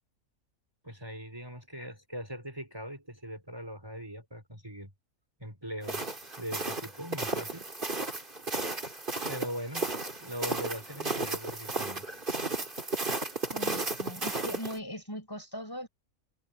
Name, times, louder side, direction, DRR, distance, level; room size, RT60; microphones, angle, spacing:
voice 1, 0.8-4.9 5.4-7.7 9.3-9.9 10.2-12.2, equal, 15° right, 4.7 m, -41 dB
sound 1, 5.8-14.8, right 3 dB, 35° right, 3.1 m, -34 dB
voice 2, 13.5-15.9, equal, 15° left, 5.7 m, -40 dB
omnidirectional pair, 1.5 m